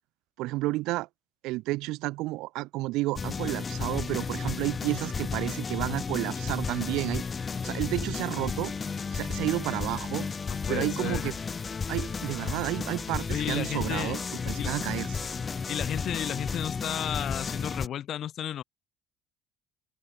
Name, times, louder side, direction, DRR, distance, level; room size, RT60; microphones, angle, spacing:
voice 1, 0.4-1.1 1.4-7.2 7.6-8.7 9.1-10.3 10.7-11.3 11.9-14.2 14.5-15.2, right 20 dB, 75° right, 0.5 m, -31 dB
sound 1, 3.2-17.9, left 5 dB, 20° left, 0.5 m, -33 dB
Keyboard (musical), 9.2-14.5, right 8 dB, 35° right, 6.5 m, -65 dB
voice 2, 10.5-11.3 13.3-14.1 14.6-14.7 15.7-18.6, left 10 dB, 45° left, 1.2 m, -33 dB
cardioid pair, 150°, 0 cm